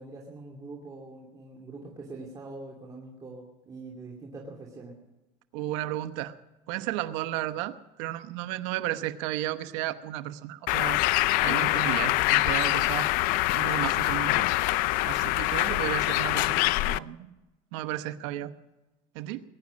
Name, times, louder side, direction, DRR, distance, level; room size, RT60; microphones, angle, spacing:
voice 1, 0.0-4.9, right 3 dB, 25° right, -2 dB, 2.7 m, -43 dB
voice 2, 5.5-6.3 6.7-11.0 11.4-13.1 13.5-14.5 15.1-17.3 17.7-18.5 19.1-19.4, right 14 dB, 85° right, 10 dB, 1.0 m, -33 dB
Bird, 10.7-17.0, left 18 dB, 65° left, 0.5 m, -25 dB
21.0 x 10.5 x 6.3 m, 1.0 s
cardioid pair, 135°, 15 cm